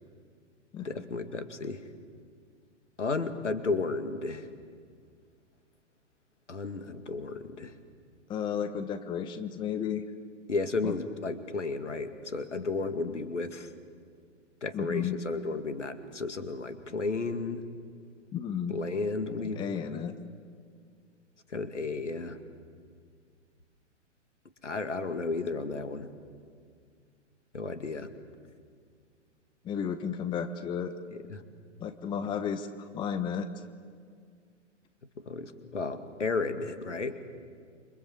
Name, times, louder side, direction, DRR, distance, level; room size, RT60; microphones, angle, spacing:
voice 1, 0.8-1.8 3.0-4.5 6.5-7.7 10.5-13.7 14.6-17.6 18.7-20.0 21.5-22.4 24.6-26.1 27.5-28.1 31.1-31.4 35.2-37.2, left 3 dB, 70° left, 9 dB, 2.4 m, -33 dB
voice 2, 8.3-10.0 10.8-10.9 14.7-15.2 18.3-18.8 19.4-20.1 29.6-30.9 31.8-32.7 32.9-33.5, left 8 dB, 15° left, 10 dB, 0.9 m, -33 dB
28.0 x 25.0 x 8.0 m, 2.1 s
figure-of-eight pair, 115°, 37 cm